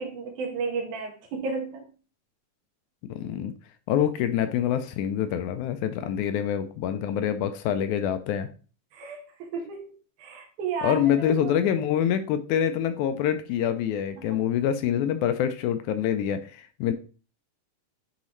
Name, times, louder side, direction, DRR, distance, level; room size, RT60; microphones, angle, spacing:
voice 1, 0.0-1.9 8.9-9.9 10.2-11.6 14.2-14.3, right 4 dB, 75° right, 2 dB, 2.7 m, -33 dB
voice 2, 3.0-3.5 3.9-8.5 10.8-16.9, left 9 dB, 80° left, 9 dB, 1.9 m, -26 dB
9.4 x 4.0 x 3.1 m, 0.37 s
omnidirectional pair, 3.6 m